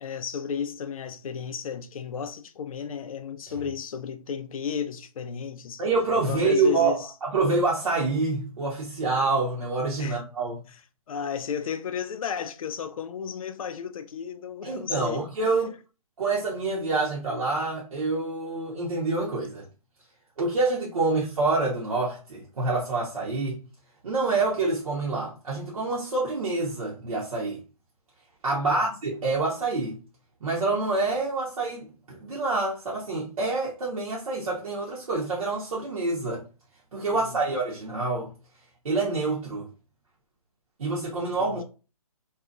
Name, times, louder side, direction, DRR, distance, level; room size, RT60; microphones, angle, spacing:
voice 1, 0.0-5.8 6.3-7.1 10.0-10.2 10.7-10.8 11.1-15.8 28.5-28.9 37.2-37.4 41.4-41.6, left 7 dB, 65° left, 0.4 m, -34 dB
voice 2, 5.8-10.6 14.6-15.7 16.2-19.7 20.4-23.6 24.0-27.6 28.4-30.0 30.4-36.4 36.9-38.3 38.8-39.7 40.8-41.6, right 3 dB, 65° right, 0.9 m, -27 dB
2.7 x 2.4 x 2.3 m
hypercardioid pair, 145°, 19 cm